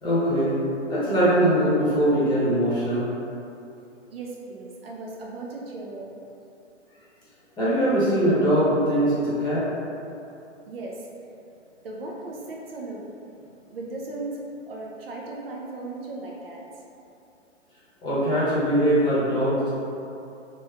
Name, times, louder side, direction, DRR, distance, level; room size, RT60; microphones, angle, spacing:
voice 1, 0.0-0.5 0.9-3.1 7.6-9.7 18.0-19.7, right 1 dB, 10° left, -9 dB, 0.9 m, -21 dB
voice 2, 4.1-6.1 10.7-11.1 11.8-13.1 13.7-16.6, right 2 dB, 50° right, -2 dB, 0.6 m, -36 dB
3.0 x 3.0 x 3.4 m, 2.8 s
hypercardioid pair, 130°, 37 cm